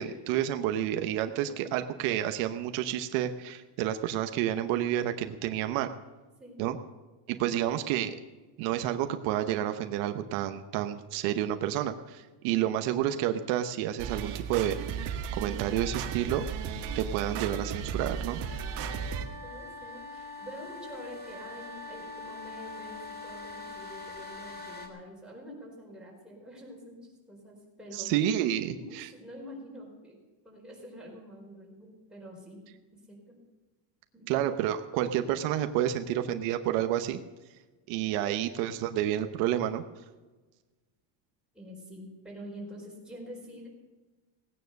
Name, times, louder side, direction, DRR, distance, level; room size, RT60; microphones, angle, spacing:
voice 1, 0.0-5.9 6.6-6.8 7.3-8.2 8.6-16.4 16.9-18.4 27.9-29.1 34.3-37.2 37.9-39.8, right 11 dB, 80° right, 8 dB, 1.0 m, -30 dB
voice 2, 1.3-1.8 6.4-6.6 7.3-7.6 18.7-28.1 28.7-30.2 30.4-32.6 32.9-33.4 34.1-34.3 35.9-36.1 41.5-43.7, equal, ahead, -3 dB, 4.5 m, -47 dB
sound 1, 14.0-19.2, right 7 dB, 60° right, 1.5 m, -35 dB
sound 2, 18.5-24.9, left 3 dB, 20° left, 2.2 m, -43 dB
17.5 x 9.4 x 6.5 m, 1.2 s
cardioid pair, 155°, 48 cm